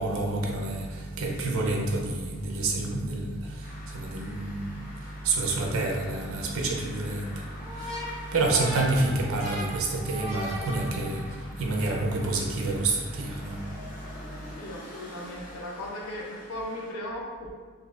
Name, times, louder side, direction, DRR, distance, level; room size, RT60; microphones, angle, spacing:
voice 1, 0.0-14.5, right 2 dB, 80° right, 0 dB, 0.6 m, -29 dB
sound 1, 3.6-16.9, left 1 dB, 40° left, 0.6 m, -47 dB
sound 2, 7.6-11.5, equal, 5° left, 0.7 m, -38 dB
voice 2, 14.4-17.5, left 1 dB, 85° left, -2 dB, 0.6 m, -37 dB
4.0 x 2.7 x 2.4 m, 1.5 s
head